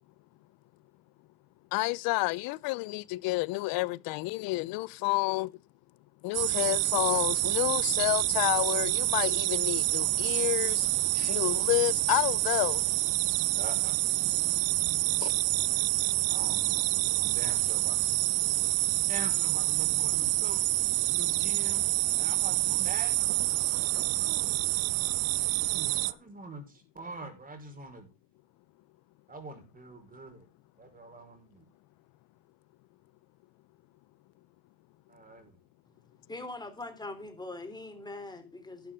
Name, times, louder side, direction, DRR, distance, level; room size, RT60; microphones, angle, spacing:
voice 1, 1.7-5.5 6.2-10.9 11.1-12.8 15.2-15.3, left 22 dB, 60° left, 0.7 m, -30 dB
sound 1, 6.3-26.1, right 20 dB, 85° right, 0.7 m, -27 dB
voice 2, 13.5-14.0 15.7-16.9 17.2-18.1 19.1-20.7 21.0-21.8 22.1-23.4 23.7-23.9 24.2-24.6 25.6-28.1 29.3-30.4 30.8-31.7 35.1-35.5, right 2 dB, 20° right, 5.0 m, -44 dB
voice 3, 36.3-38.9, left 2 dB, 10° left, 3.7 m, -42 dB
12.0 x 11.0 x 3.7 m
supercardioid pair, 100°, 40 cm